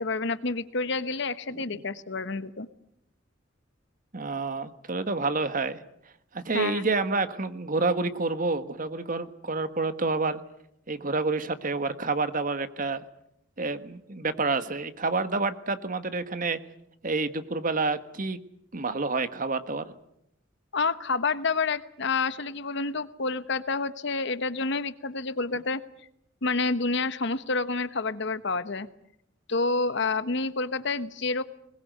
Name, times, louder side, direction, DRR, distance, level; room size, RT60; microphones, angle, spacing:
voice 1, 0.0-2.7 6.5-6.9 20.7-25.8 26.4-28.9 29.5-31.4, left 3 dB, 65° left, 13 dB, 1.1 m, -28 dB
voice 2, 4.1-5.8 6.3-10.4 10.9-13.0 13.6-16.6 17.0-18.4 18.7-19.9, right 3 dB, 45° right, 11 dB, 1.4 m, -28 dB
21.5 x 20.0 x 9.3 m, 0.77 s
head